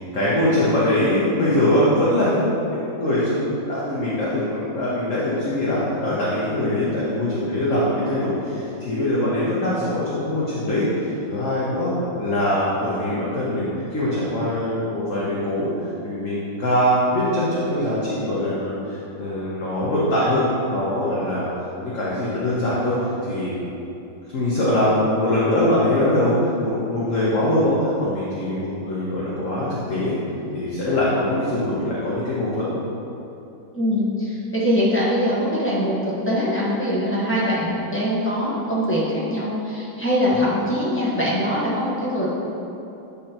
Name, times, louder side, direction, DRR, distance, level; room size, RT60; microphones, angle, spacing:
voice 1, 0.0-11.9 12.2-15.7 16.0-21.5 21.8-22.9 23.2-23.6 24.3-26.3 26.6-30.1 30.5-32.7, left 1 dB, 50° left, -8 dB, 1.2 m, -22 dB
voice 2, 33.7-42.3, equal, 10° left, -8 dB, 0.9 m, -22 dB
8.5 x 5.2 x 2.9 m, 2.9 s
omnidirectional pair, 2.2 m